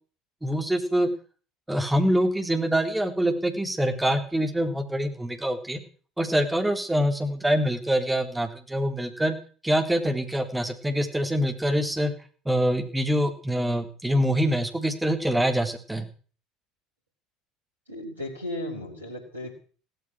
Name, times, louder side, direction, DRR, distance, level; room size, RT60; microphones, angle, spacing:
voice 1, 0.4-1.1 1.7-5.8 6.2-9.4 9.6-12.1 12.5-16.1, equal, 10° right, 5 dB, 3.7 m, -25 dB
voice 2, 17.9-19.6, left 1 dB, 85° right, 4 dB, 4.1 m, -35 dB
16.5 x 13.5 x 6.3 m, 0.40 s
figure-of-eight pair, 65°, 0 cm